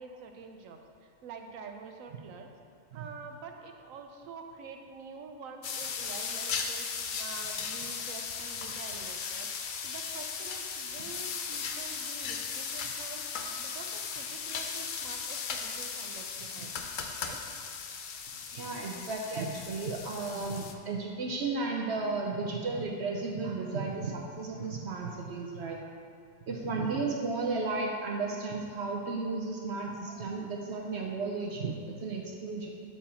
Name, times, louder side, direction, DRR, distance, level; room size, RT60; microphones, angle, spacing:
voice 1, 0.0-2.5 2.9-6.9 7.2-9.5 9.8-16.8 17.2-17.4 26.9-27.2, right 5 dB, 80° right, 4 dB, 1.1 m, -47 dB
sound 1, 5.6-20.7, left 6 dB, 60° left, 0.5 m, -37 dB
voice 2, 18.5-25.8 26.5-32.7, right 3 dB, 65° right, 0 dB, 0.8 m, -34 dB
8.2 x 4.7 x 4.3 m, 2.4 s
omnidirectional pair, 1.4 m